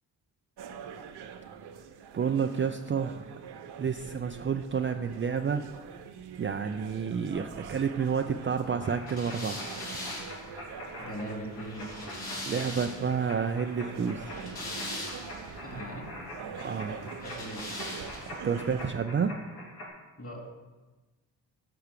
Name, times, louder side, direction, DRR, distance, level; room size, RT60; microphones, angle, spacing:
sound 1, 0.6-18.9, right 7 dB, 65° right, 0.8 m, -45 dB
voice 1, 2.1-3.2 3.8-5.6 6.4-9.6 12.5-14.2 16.6-17.1 18.3-19.3, right 6 dB, 30° right, 6 dB, 0.5 m, -30 dB
sound 2, 8.8-19.9, left 1 dB, 85° left, 1.8 m, -45 dB
sound 3, 9.1-13.2 14.1-15.5 17.2-18.4, left 1 dB, 60° left, 2.6 m, -40 dB
voice 2, 11.0-11.9 15.6-16.1 17.0-17.6 20.2-20.4, equal, 30° left, 1 dB, 2.6 m, -40 dB
6.8 x 4.6 x 6.6 m, 1.2 s
supercardioid pair, 50°, 42 cm